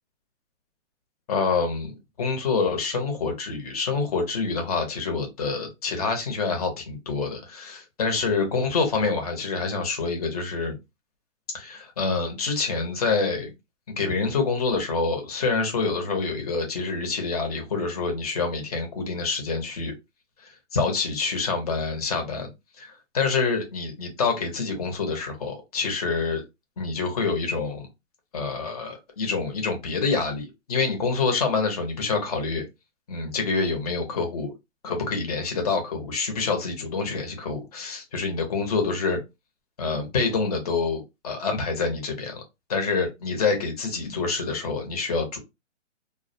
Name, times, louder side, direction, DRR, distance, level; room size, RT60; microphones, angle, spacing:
voice 1, 1.3-7.7 8.0-10.8 11.5-13.5 13.9-19.9 20.7-22.5 22.8-26.4 26.8-27.9 28.3-32.7 33.1-34.5 34.8-39.2 39.8-42.4 42.7-45.4, left 4 dB, 30° left, 0.7 m, -27 dB
2.3 x 2.1 x 2.5 m
hypercardioid pair, 155°, 37 cm